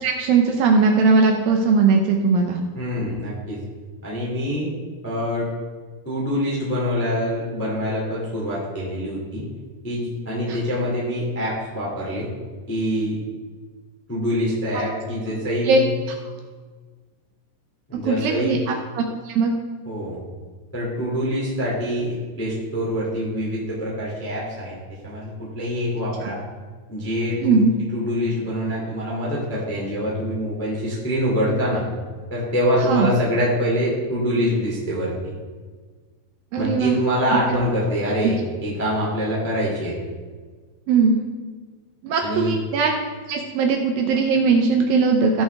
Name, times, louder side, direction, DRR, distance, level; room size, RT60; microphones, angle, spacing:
voice 1, 0.0-2.6 10.5-10.6 15.7-15.8 18.0-18.6 19.0-19.5 27.4-27.7 32.9-33.1 36.5-36.9 40.9-41.2 42.0-42.9 43.3-45.4, right 4 dB, 80° right, 2 dB, 2.0 m, -19 dB
voice 2, 2.7-3.6 4.0-4.8 5.0-5.5 6.0-9.4 9.8-12.3 12.7-13.2 14.1-15.9 17.9-18.6 19.8-20.2 20.7-24.8 25.0-26.4 26.9-27.6 27.9-31.8 32.3-35.3 36.6-39.9 42.2-42.5, equal, 5° left, -5 dB, 1.3 m, -25 dB
16.0 x 5.6 x 3.5 m, 1.5 s
omnidirectional pair, 5.0 m